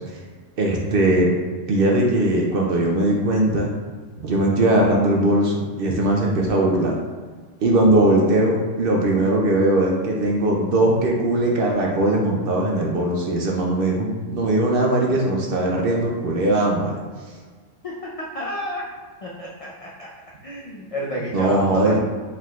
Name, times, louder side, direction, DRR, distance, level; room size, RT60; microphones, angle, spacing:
voice 1, 0.6-1.3 1.7-3.7 4.2-6.9 7.6-17.0 21.3-22.0, right 1 dB, 60° right, -1 dB, 0.6 m, -20 dB
voice 2, 17.8-18.9 19.2-20.1 20.4-22.0, equal, 60° left, -4 dB, 0.3 m, -30 dB
4.5 x 3.6 x 2.3 m, 1.5 s
omnidirectional pair, 1.3 m